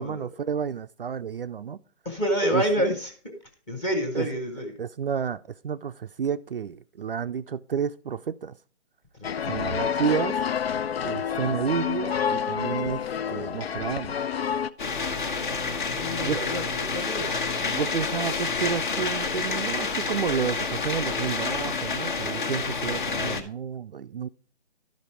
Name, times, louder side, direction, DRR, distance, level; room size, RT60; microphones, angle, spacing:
voice 1, 0.0-1.8 2.5-2.6 4.2-4.3 4.8-8.5 9.5-10.4 11.0-13.0 13.3-14.2 16.2-16.4 17.7-24.3, right 7 dB, 55° right, 0.4 m, -30 dB
voice 2, 2.0-3.3 3.7-4.7 9.1-9.8 15.8-17.4, equal, 10° left, 0.8 m, -29 dB
sound 1, 9.2-14.7, left 7 dB, 65° left, 0.6 m, -28 dB
sound 2, 14.8-23.4, left 4 dB, 45° left, 1.3 m, -29 dB
12.0 x 5.2 x 4.3 m
figure-of-eight pair, 155°, 34 cm